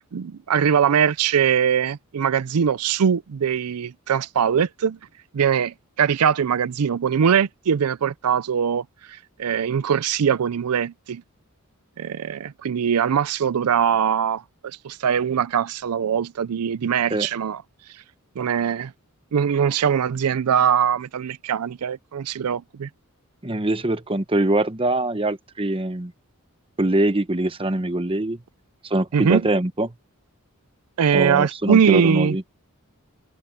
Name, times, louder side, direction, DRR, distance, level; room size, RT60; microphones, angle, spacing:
voice 1, 0.1-5.0 5.3-11.2 12.0-17.6 18.4-18.9 19.3-22.9 29.1-29.4 31.0-32.4, right 7 dB, 85° right, 0.5 m, -22 dB
voice 2, 23.4-26.1 26.8-28.4 28.8-29.9 31.1-32.4, right 1 dB, 25° right, 1.1 m, -23 dB
head